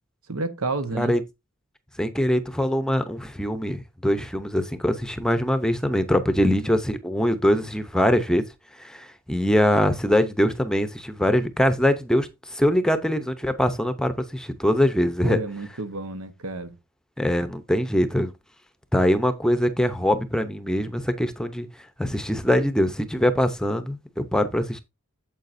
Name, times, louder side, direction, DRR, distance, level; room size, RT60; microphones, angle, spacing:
voice 1, 0.3-1.2 6.4-6.7 15.2-16.8, right 3 dB, 85° right, 1.1 m, -30 dB
voice 2, 2.0-8.4 8.8-15.4 17.2-18.3 18.9-21.7 22.0-24.8, equal, 5° left, 0.7 m, -23 dB
9.1 x 7.5 x 2.6 m
head